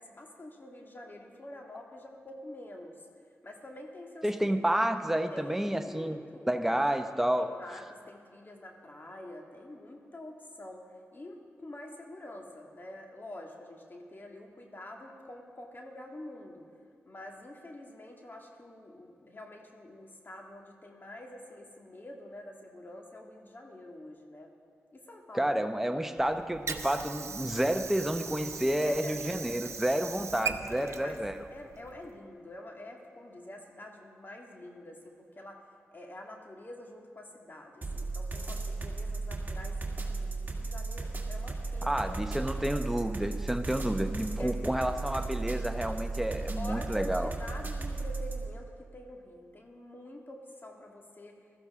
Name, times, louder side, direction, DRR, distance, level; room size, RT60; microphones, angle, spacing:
voice 1, 0.0-3.1 3.4-4.7 5.3-6.8 7.4-16.7 17.1-24.5 24.9-25.5 25.9-26.1 28.7-30.0 30.6-31.2 31.5-35.6 35.9-42.2 42.5-42.9 44.4-45.0 46.6-51.4, left 1 dB, 40° left, 1 dB, 2.1 m, -47 dB
voice 2, 4.2-6.2 6.5-7.5 25.3-31.3 41.8-47.3, right 1 dB, 5° right, 7 dB, 0.9 m, -30 dB
Water / Sink (filling or washing), 26.2-32.2, right 6 dB, 70° right, 0.7 m, -40 dB
sound 1, 37.8-48.5, right 3 dB, 35° right, 2.1 m, -35 dB
15.5 x 13.5 x 3.7 m, 2.3 s
cardioid pair, 40°, 5 cm